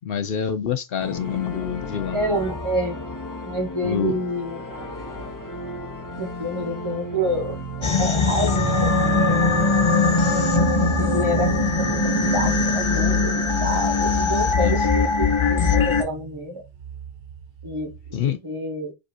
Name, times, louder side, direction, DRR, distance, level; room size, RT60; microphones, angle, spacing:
voice 1, 0.1-2.2 3.8-4.2 14.6-14.9 18.1-18.4, left 8 dB, 65° left, 0.8 m, -26 dB
sound 1, 1.0-10.5, left 1 dB, 20° left, 0.9 m, -35 dB
voice 2, 2.1-3.0 3.4-5.0 6.2-9.6 11.0-11.5 11.7-16.6 17.6-17.9 18.2-18.9, equal, 30° right, 1.2 m, -28 dB
sound 2, 4.1-18.3, right 10 dB, 60° right, 0.7 m, -33 dB
sound 3, 7.8-16.0, left 4 dB, 35° left, 0.6 m, -21 dB
5.3 x 2.8 x 2.5 m
omnidirectional pair, 1.1 m